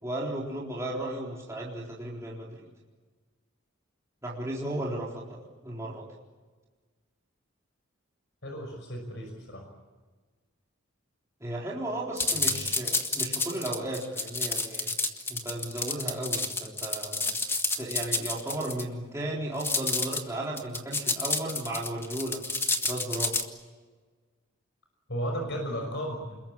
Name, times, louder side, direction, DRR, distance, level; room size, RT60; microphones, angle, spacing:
voice 1, 0.0-2.7 4.2-5.4 5.6-6.1 11.4-14.9 15.3-17.3 17.8-22.4 22.8-23.5, right 1 dB, 15° right, -5 dB, 4.0 m, -35 dB
voice 2, 8.4-9.6 12.2-12.7 25.1-26.4, equal, 55° left, 2 dB, 5.9 m, -35 dB
sound 1, 12.2-18.8 19.6-20.2 20.6-23.4, left 3 dB, 10° left, 1.6 m, -29 dB
28.5 x 22.0 x 8.7 m, 1.3 s
head